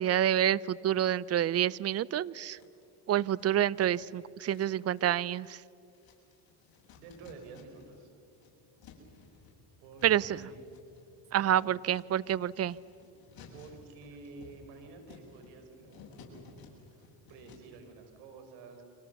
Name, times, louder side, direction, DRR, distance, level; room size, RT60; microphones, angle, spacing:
voice 1, 0.0-2.6 3.1-5.6 10.0-10.4 11.3-12.8, right 11 dB, 35° right, 22 dB, 0.6 m, -28 dB
sound 1, 1.4-2.2 2.5-8.0 8.3-17.8, left 3 dB, 50° left, 7.4 m, -56 dB
voice 2, 7.0-8.1 9.8-10.8 11.3-11.6 13.5-16.1 16.9-18.9, right 4 dB, 90° right, 6 dB, 5.3 m, -50 dB
30.0 x 25.5 x 7.0 m, 2.5 s
supercardioid pair, 105°, 46 cm